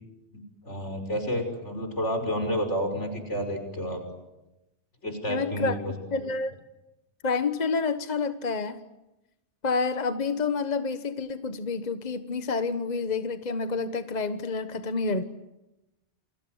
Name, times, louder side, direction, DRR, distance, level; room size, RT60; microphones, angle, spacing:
voice 1, 0.6-4.0 5.0-5.9, equal, 80° left, 6 dB, 5.9 m, -30 dB
voice 2, 5.3-6.5 7.2-8.8 9.6-15.2, left 4 dB, 40° left, 9 dB, 1.3 m, -29 dB
28.5 x 26.0 x 8.0 m, 0.96 s
omnidirectional pair, 1.2 m